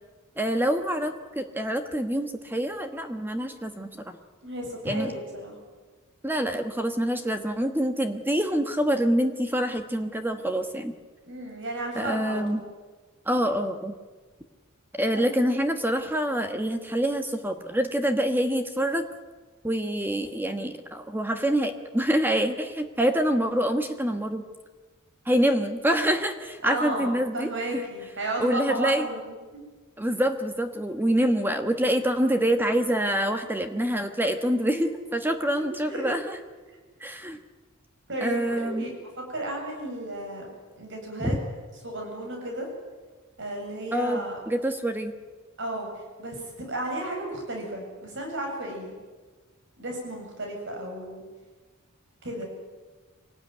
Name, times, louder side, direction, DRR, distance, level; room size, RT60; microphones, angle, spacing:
voice 1, 0.4-4.2 4.8-5.1 6.2-10.9 11.9-12.6 13.2-13.9 15.0-19.0 19.6-24.4 25.2-27.8 28.4-29.1 30.0-36.4 37.0-37.4 38.2-38.8 41.2-41.3 43.9-45.1, right 1 dB, 10° right, 6 dB, 1.3 m, -26 dB
voice 2, 4.4-5.6 11.2-12.4 15.1-15.4 26.6-29.7 34.7-34.9 35.5-36.0 38.1-40.5 40.8-41.4 41.8-42.7 43.4-44.4 45.6-48.9 49.8-51.2 52.2-52.5, right 1 dB, 60° right, 2 dB, 8.0 m, -33 dB
25.5 x 18.5 x 9.4 m, 1.3 s
head